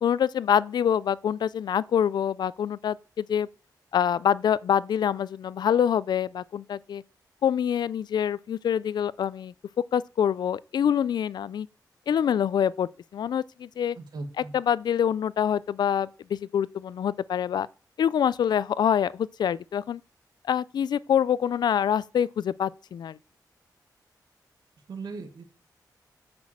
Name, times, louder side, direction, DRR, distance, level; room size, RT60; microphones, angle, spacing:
voice 1, 0.0-3.5 3.9-7.0 7.4-11.7 12.1-14.0 14.5-17.7 18.0-20.0 20.5-23.2, left 8 dB, 80° left, 0.4 m, -25 dB
voice 2, 14.0-14.5 24.9-25.4, right 3 dB, 75° right, 2.0 m, -38 dB
8.8 x 6.1 x 7.3 m
wide cardioid pair, 125°, 7 cm